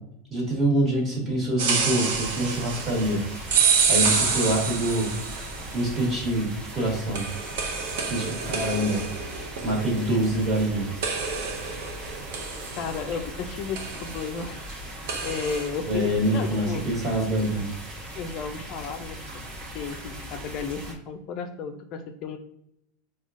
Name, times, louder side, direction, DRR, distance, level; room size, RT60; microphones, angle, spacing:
voice 1, 0.3-3.2 3.9-5.1 5.7-7.2 8.0-9.0 9.6-10.9 15.9-17.6, right 1 dB, 25° right, -2 dB, 1.4 m, -25 dB
sound 1, 1.6-5.8 7.2-10.7 11.0-13.4 13.8-14.3 15.1-15.7, right 5 dB, 70° right, 0.7 m, -28 dB
sound 2, 2.0-20.9, equal, 50° right, 1.0 m, -39 dB
voice 2, 12.7-14.6 15.2-16.8 18.1-19.2 19.7-22.4, left 5 dB, 45° left, 6 dB, 0.3 m, -33 dB
4.8 x 2.2 x 2.4 m, 0.78 s
supercardioid pair, 135°, 0 cm